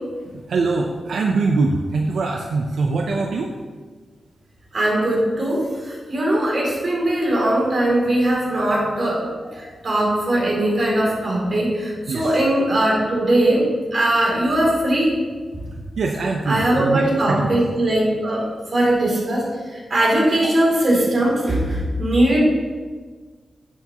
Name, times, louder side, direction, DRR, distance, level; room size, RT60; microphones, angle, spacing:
voice 1, 0.3-3.5 12.1-12.3 16.0-17.6, right 3 dB, 75° right, 2 dB, 0.6 m, -23 dB
voice 2, 4.7-15.2 16.5-22.4, right 1 dB, 40° right, -4 dB, 2.8 m, -20 dB
11.0 x 8.4 x 2.9 m, 1.4 s
wide cardioid pair, 165°, 0 cm